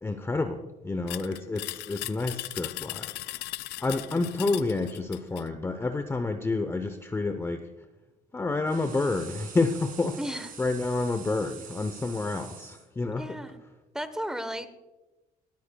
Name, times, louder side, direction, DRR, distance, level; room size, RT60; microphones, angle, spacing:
voice 1, 0.0-3.5 3.8-7.7 8.3-10.2 10.6-13.4, left 3 dB, 15° left, 8 dB, 0.6 m, -29 dB
sound 1, 1.1-5.5, left 16 dB, 80° left, 0.5 m, -38 dB
sound 2, 8.7-12.8, right 7 dB, 55° right, 2.5 m, -46 dB
voice 2, 10.2-10.5 13.2-13.6 13.9-14.7, equal, 5° right, 11 dB, 1.0 m, -34 dB
19.5 x 13.0 x 2.3 m, 1.1 s
cardioid pair, 110°, 17 cm